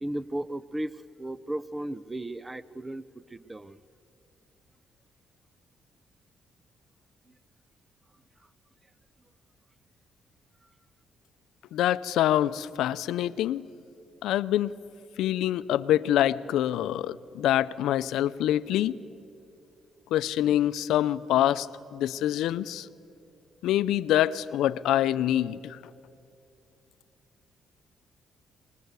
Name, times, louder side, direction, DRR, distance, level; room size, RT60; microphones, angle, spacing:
voice 1, 0.0-0.9 1.2-3.8, right 1 dB, 15° right, 17 dB, 0.6 m, -35 dB
voice 2, 11.7-13.6 14.2-14.7 15.2-19.0 20.1-21.7 21.9-22.8 23.6-25.8, left 12 dB, 85° left, 15 dB, 0.5 m, -25 dB
24.0 x 20.5 x 8.1 m, 2.6 s
cardioid pair, 90°, 0 cm